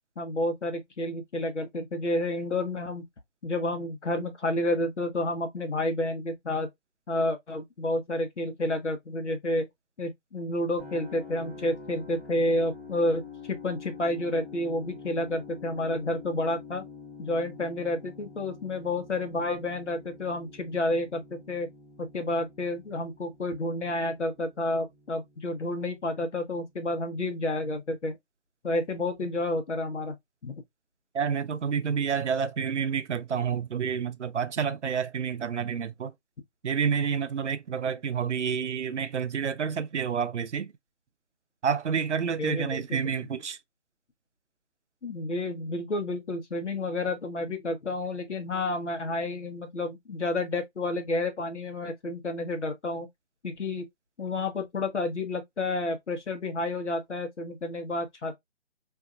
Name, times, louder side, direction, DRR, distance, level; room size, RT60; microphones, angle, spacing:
voice 1, 0.2-3.0 3.4-6.7 7.1-9.7 10.0-13.2 13.5-16.8 17.2-21.7 22.0-28.1 28.6-30.1 30.4-30.6 42.4-43.0 45.0-53.1 53.4-53.8 54.2-58.4, left 1 dB, 85° left, 1.0 m, -30 dB
sound 1, 10.8-26.7, left 4 dB, 15° left, 0.6 m, -47 dB
voice 2, 31.1-36.1 36.6-40.7 41.6-43.6, right 7 dB, 85° right, 0.6 m, -29 dB
2.7 x 2.2 x 2.5 m
figure-of-eight pair, 155°, 34 cm